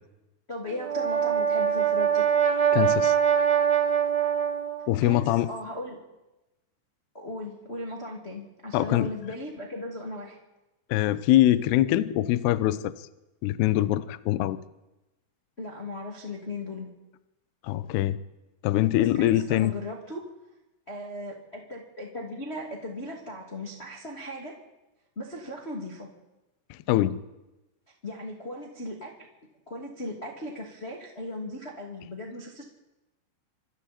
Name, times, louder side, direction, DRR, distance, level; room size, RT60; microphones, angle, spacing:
voice 1, 0.5-2.2 5.0-6.0 7.1-10.4 15.6-16.9 18.9-20.3 20.9-24.5 25.1-26.1 28.0-29.1 29.7-32.6, left 1 dB, 25° left, -1 dB, 1.3 m, -37 dB
Brass instrument, 0.7-4.9, right 8 dB, 35° right, 2.3 m, -23 dB
voice 2, 2.7-3.2 4.9-5.5 8.7-9.1 10.9-12.9 13.4-14.6 17.6-18.2 18.6-19.7 26.7-27.2, left 14 dB, 85° left, 13 dB, 2.3 m, -23 dB
26.0 x 26.0 x 4.4 m, 1.0 s
omnidirectional pair, 5.9 m